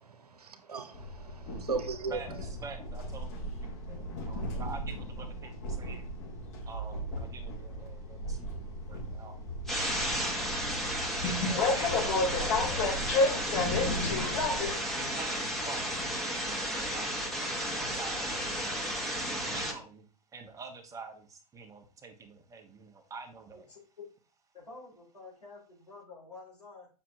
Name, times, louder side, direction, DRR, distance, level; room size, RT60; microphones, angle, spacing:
voice 1, 0.0-2.2 4.3-4.5, right 4 dB, 75° right, 0.9 m, -38 dB
Train, 0.9-14.7, left 2 dB, 50° left, 3.1 m, -33 dB
voice 2, 2.1-6.1 6.7-9.4 10.0-10.5 11.1-13.4 14.1-14.5 15.0-18.8 19.4-20.0 20.3-23.7, right 4 dB, 15° right, 1.2 m, -47 dB
sound 1, 9.7-19.7, equal, ahead, 1.4 m, -33 dB
voice 3, 23.5-24.1 24.5-26.9, left 3 dB, 85° left, 3.8 m, -49 dB
7.3 x 5.9 x 2.7 m
figure-of-eight pair, 100°, 20 cm